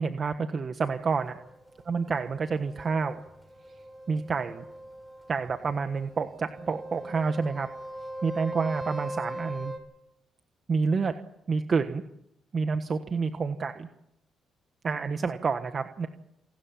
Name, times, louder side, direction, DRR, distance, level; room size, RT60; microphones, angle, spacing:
voice 1, 0.0-1.4 1.9-3.2 4.1-4.6 5.3-7.7 8.2-9.7 10.7-11.1 11.5-12.0 12.5-13.9 14.8-16.1, right 5 dB, 45° right, 8 dB, 1.4 m, -28 dB
sound 1, 0.9-9.8, right 1 dB, ahead, 7.2 m, -41 dB
28.0 x 13.0 x 9.1 m, 0.81 s
cardioid pair, 90°, 0 cm